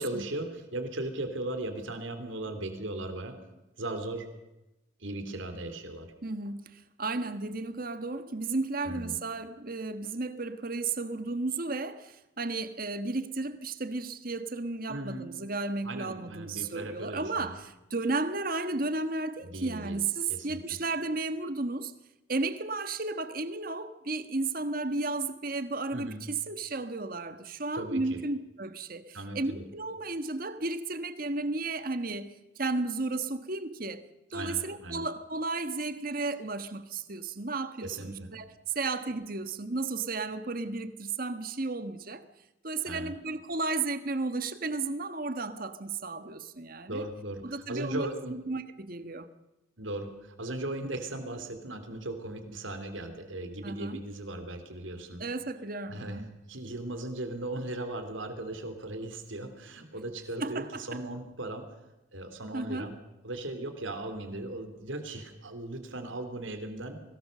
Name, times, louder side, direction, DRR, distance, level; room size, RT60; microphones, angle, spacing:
voice 1, 0.0-3.3 3.8-4.3 5.0-6.1 8.8-9.2 14.9-15.3 15.8-17.6 19.4-20.0 20.3-20.6 25.9-26.2 27.7-28.2 29.1-29.6 34.3-35.0 37.8-38.3 42.8-43.1 46.9-48.4 49.8-55.3 55.9-56.2 56.5-61.6 62.1-62.9 63.2-67.0, right 1 dB, 75° right, 3.2 m, -37 dB
voice 2, 6.2-21.9 22.3-34.0 34.3-42.2 42.6-47.1 47.4-49.3 53.6-54.0 55.2-56.3 60.4-61.0 62.5-62.9, right 3 dB, 45° right, 1.4 m, -33 dB
23.5 x 19.0 x 6.7 m
head